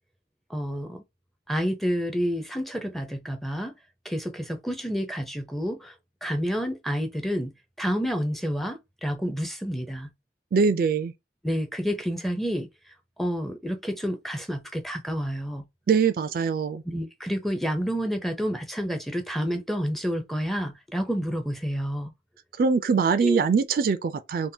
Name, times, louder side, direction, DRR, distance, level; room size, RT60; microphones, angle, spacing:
voice 1, 0.5-1.0 1.5-3.7 4.0-5.9 6.2-7.5 7.8-10.1 11.4-12.7 13.2-15.6 16.9-22.1 23.2-23.4, equal, ahead, 0.5 m, -29 dB
voice 2, 10.5-11.1 15.9-16.8 22.6-24.5, right 5 dB, 55° right, 0.3 m, -23 dB
3.4 x 2.2 x 2.7 m
head